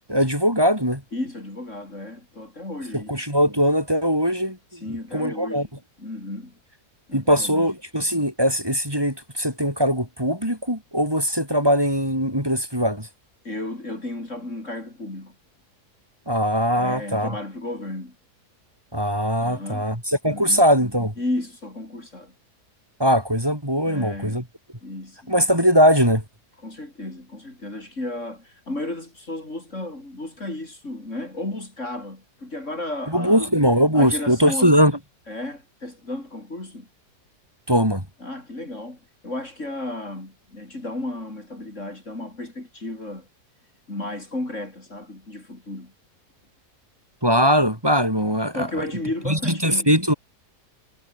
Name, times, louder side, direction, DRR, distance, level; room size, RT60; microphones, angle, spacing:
voice 1, 0.0-1.0 2.9-5.7 7.1-13.1 16.3-17.4 18.9-21.1 23.0-24.4 25.3-26.2 33.1-35.0 37.7-38.1 47.2-48.9 49.3-50.1, equal, 15° right, 7.1 m, -21 dB
voice 2, 1.1-3.2 4.7-5.7 6.0-6.5 7.1-7.7 13.4-15.3 16.7-18.1 19.4-19.9 20.3-20.6 21.2-22.3 23.8-24.4 24.8-25.3 26.6-33.5 33.9-34.7 35.3-36.9 38.2-43.3 43.9-45.9 48.5-49.9, left 2 dB, 50° left, 6.1 m, -33 dB
omnidirectional pair, 1.7 m